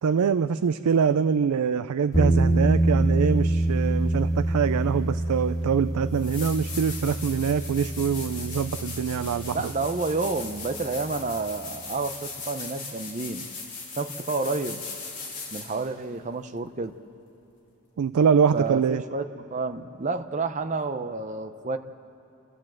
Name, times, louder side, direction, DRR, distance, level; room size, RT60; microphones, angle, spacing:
voice 1, 0.0-9.7 18.0-19.0, right 6 dB, 80° right, 12 dB, 0.4 m, -24 dB
sound 1, 2.1-11.1, right 1 dB, 15° left, 1.2 m, -26 dB
sound 2, 5.6-5.7 6.1-15.9 18.7-18.8, left 4 dB, 35° left, 3.4 m, -39 dB
voice 2, 9.5-13.5 14.0-14.8 15.5-17.0 18.5-21.8, right 3 dB, 30° right, 7 dB, 0.6 m, -30 dB
29.5 x 13.0 x 7.5 m, 2.8 s
head